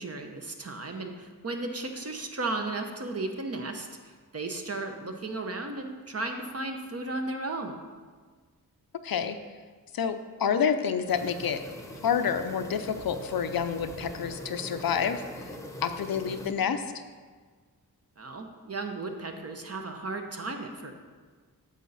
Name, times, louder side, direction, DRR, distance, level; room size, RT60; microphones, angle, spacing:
voice 1, 0.0-7.7 18.2-20.9, right 2 dB, 40° right, 4 dB, 1.0 m, -35 dB
voice 2, 9.0-9.4 9.9-11.6 12.0-15.5 15.8-16.9, left 7 dB, 70° left, 9 dB, 0.6 m, -28 dB
sound 1, 11.1-16.5, left 1 dB, 10° left, 0.9 m, -42 dB
9.2 x 6.6 x 4.1 m, 1.5 s
wide cardioid pair, 80°, 37 cm